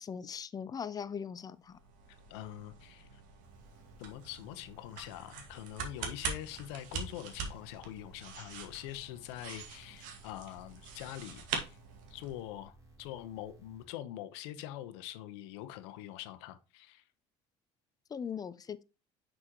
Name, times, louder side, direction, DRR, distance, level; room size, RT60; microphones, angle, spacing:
voice 1, 0.0-1.8 18.1-18.8, left 7 dB, 25° left, 0.6 m, -40 dB
sound 1, 1.7-12.4, right 5 dB, 75° right, 2.1 m, -44 dB
voice 2, 2.1-3.2 4.0-11.8 12.1-17.0, left 13 dB, 90° left, 1.0 m, -44 dB
sound 2, 3.4-13.8, right 2 dB, 20° right, 3.9 m, -59 dB
6.2 x 6.2 x 3.0 m
supercardioid pair, 110°, 14 cm